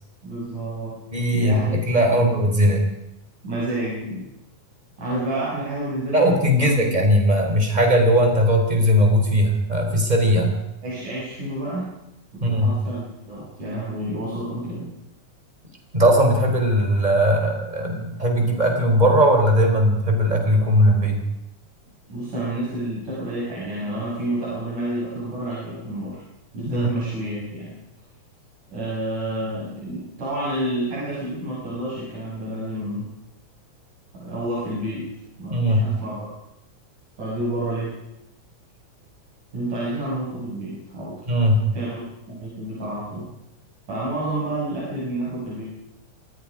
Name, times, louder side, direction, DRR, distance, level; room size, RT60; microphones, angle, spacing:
voice 1, 0.2-1.0 1.3-1.8 2.1-2.5 3.4-4.3 5.0-7.0 10.8-11.9 12.3-14.9 22.1-26.2 26.5-27.7 28.7-33.1 34.1-35.1 35.4-36.3 37.2-37.9 39.5-41.2 41.7-42.0 42.3-43.3 43.9-45.6, right 1 dB, 85° right, -7 dB, 8.6 m, -29 dB
voice 2, 1.1-2.9 6.1-10.6 12.4-12.7 15.9-21.2 26.7-26.9 35.5-35.8 41.3-41.6, equal, 15° right, 3 dB, 4.2 m, -19 dB
27.5 x 19.5 x 5.1 m, 0.87 s
omnidirectional pair, 3.4 m